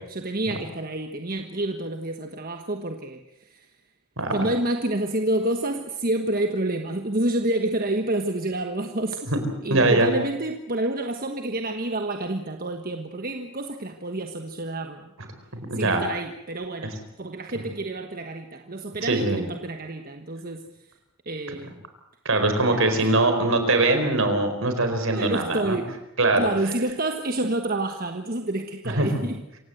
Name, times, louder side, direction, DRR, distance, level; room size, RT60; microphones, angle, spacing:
voice 1, 0.1-3.7 4.3-9.3 9.6-15.1 15.7-20.6 21.2-21.8 22.7-23.0 25.2-26.0 26.3-29.4, right 1 dB, 40° right, 5 dB, 1.3 m, -28 dB
voice 2, 9.3-10.1 15.5-16.0 19.1-19.4 22.2-25.8 26.2-26.5 28.8-29.2, right 2 dB, 65° right, 7 dB, 4.6 m, -22 dB
27.0 x 17.0 x 8.0 m, 0.88 s
head